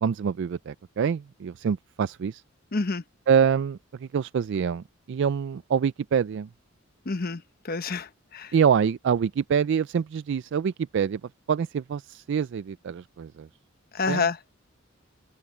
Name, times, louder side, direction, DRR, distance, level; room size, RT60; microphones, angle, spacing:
voice 1, 0.0-2.4 3.3-6.5 8.5-11.2 11.5-13.5 14.1-14.3, right 7 dB, 60° right, 0.3 m, -25 dB
voice 2, 2.7-3.0 7.1-8.5 13.9-14.4, left 4 dB, 45° left, 1.0 m, -28 dB
open air
head